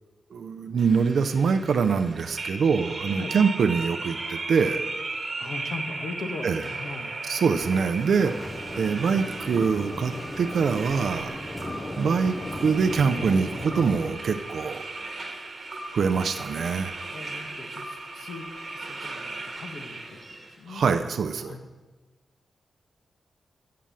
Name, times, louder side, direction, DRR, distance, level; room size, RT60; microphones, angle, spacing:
voice 1, 0.3-4.8 6.4-6.7 7.2-8.3 8.8-11.4 12.0-14.8 15.9-17.0 20.7-21.6, right 5 dB, 70° right, 8 dB, 0.5 m, -24 dB
sound 1, 0.8-20.6, right 3 dB, 35° right, 1.2 m, -36 dB
voice 2, 5.4-7.2 17.0-18.4 18.7-20.8 21.4-21.7, left 3 dB, 70° left, 4 dB, 1.1 m, -39 dB
sound 2, 7.6-14.1, left 1 dB, 20° left, 0.5 m, -36 dB
7.5 x 6.9 x 7.4 m, 1.3 s
wide cardioid pair, 155°, 0 cm